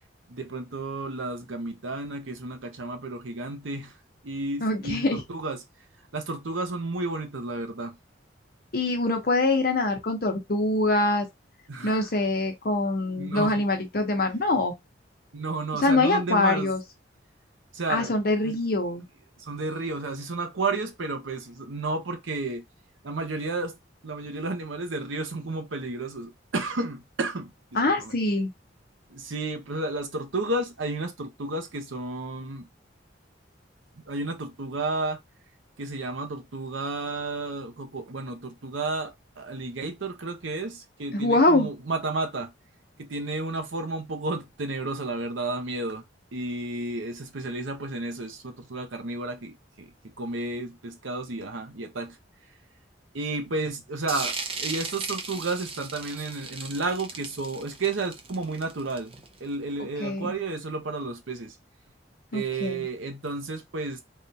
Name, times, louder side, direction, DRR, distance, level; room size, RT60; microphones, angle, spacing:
voice 1, 0.3-3.9 4.2-5.6 6.1-8.0 11.7-12.0 13.2-13.6 15.3-16.7 17.7-18.1 18.4-18.5 19.4-22.6 23.0-23.8 24.0-27.5 28.0-28.1 29.1-32.7 33.9-35.2 35.8-42.5 43.0-46.0 46.3-52.2 53.1-61.6 62.3-64.0, right 3 dB, 90° right, 0.8 m, -32 dB
voice 2, 4.6-5.2 8.7-11.3 11.8-14.8 15.8-16.8 17.9-19.0 27.7-28.5 41.1-41.7 60.0-60.3 62.3-62.8, left 2 dB, 50° left, 0.7 m, -24 dB
sound 1, 54.1-59.4, right 4 dB, 30° right, 0.4 m, -36 dB
3.5 x 2.3 x 2.7 m
head